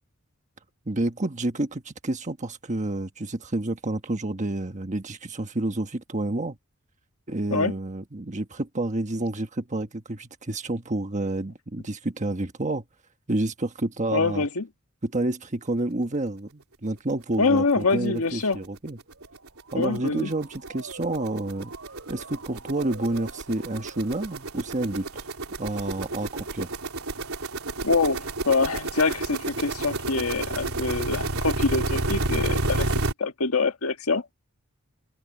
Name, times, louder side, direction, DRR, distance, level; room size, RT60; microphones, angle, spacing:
voice 1, 0.9-6.6 7.3-12.8 13.3-14.5 15.0-19.0 19.7-21.7 22.1-25.2 25.6-26.7, right 2 dB, 35° right, 1.3 m, -29 dB
voice 2, 14.1-14.6 17.4-18.6 19.7-20.3 27.8-32.9 33.2-34.2, left 4 dB, 90° left, 1.6 m, -25 dB
sound 1, 17.7-17.8 18.2-18.3 18.5-33.1, right 2 dB, 90° right, 3.3 m, -31 dB
Motor vehicle (road) / Siren, 19.1-24.9, right 3 dB, 65° right, 7.9 m, -47 dB
head